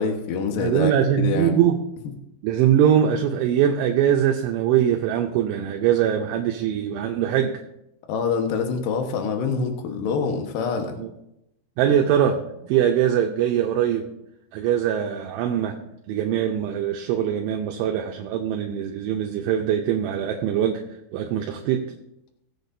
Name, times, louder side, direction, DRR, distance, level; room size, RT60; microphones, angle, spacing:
voice 1, 0.0-1.6 8.1-11.0, left 5 dB, 70° left, 4 dB, 2.1 m, -25 dB
voice 2, 0.6-1.8 2.4-7.6 11.0-11.1 11.8-14.1 14.5-15.8 16.1-20.8 21.1-21.9, right 9 dB, 80° right, 2 dB, 3.0 m, -22 dB
20.0 x 8.1 x 2.7 m, 0.84 s
omnidirectional pair, 5.7 m